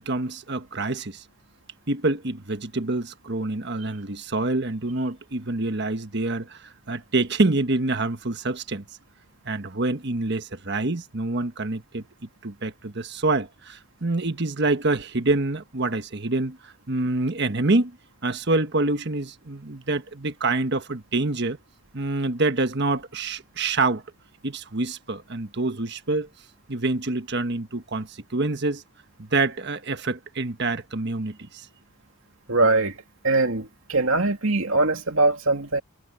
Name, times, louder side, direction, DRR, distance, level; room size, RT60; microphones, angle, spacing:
voice 1, 0.0-1.2 1.9-6.6 6.9-8.8 9.4-12.0 12.4-17.9 18.2-21.6 21.9-24.0 24.4-26.3 26.7-28.8 29.2-31.7, right 2 dB, 55° right, 1.4 m, -26 dB
voice 2, 32.5-33.0 33.2-35.8, right 2 dB, 70° right, 2.5 m, -22 dB
head